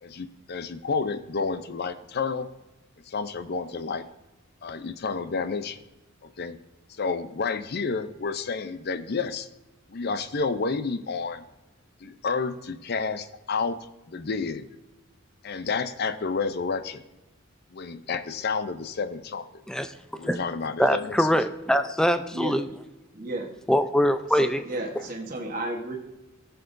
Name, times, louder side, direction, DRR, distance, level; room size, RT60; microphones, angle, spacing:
voice 1, 0.0-2.5 3.1-4.1 4.6-5.8 6.2-6.6 6.9-9.5 9.9-11.4 12.0-13.8 14.1-14.7 15.4-17.0 17.7-19.4 20.1-21.3 25.0-25.1, left 4 dB, 50° left, 12 dB, 0.6 m, -30 dB
voice 2, 20.8-22.7 23.7-24.6, equal, 5° left, 10 dB, 0.4 m, -23 dB
voice 3, 23.1-23.5 24.3-26.0, right 1 dB, 40° right, -1 dB, 1.1 m, -33 dB
14.5 x 6.8 x 2.6 m, 1.0 s
head